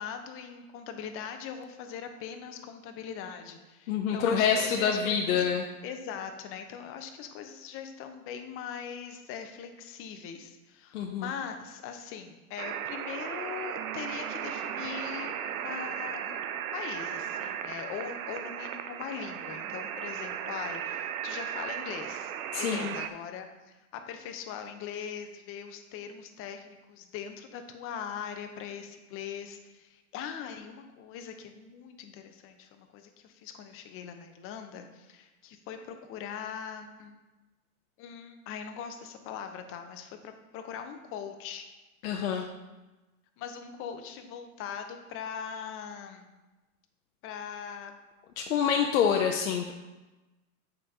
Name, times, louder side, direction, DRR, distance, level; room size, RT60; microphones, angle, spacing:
voice 1, 0.0-5.4 5.8-22.3 22.6-23.5 23.9-37.2 38.0-41.7 42.3-42.5 43.4-46.3 47.2-47.9, left 7 dB, 30° left, 6 dB, 0.7 m, -41 dB
voice 2, 3.9-5.6 10.9-11.3 22.5-22.9 42.0-42.5 48.4-49.7, left 7 dB, 65° left, 2 dB, 0.8 m, -26 dB
sound 1, 12.6-23.1, right 9 dB, 70° right, 0.6 m, -36 dB
8.2 x 5.2 x 2.8 m, 1.1 s
hypercardioid pair, 110°, 44 cm